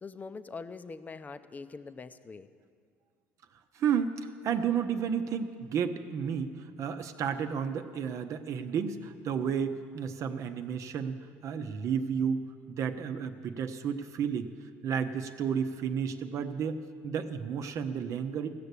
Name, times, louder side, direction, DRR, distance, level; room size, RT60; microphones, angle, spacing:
voice 1, 0.0-2.5, left 4 dB, 25° left, 11 dB, 0.7 m, -43 dB
voice 2, 3.7-14.5 14.8-18.5, right 7 dB, 55° right, 8 dB, 0.9 m, -32 dB
15.5 x 6.7 x 8.3 m, 2.1 s
supercardioid pair, 80°, 6 cm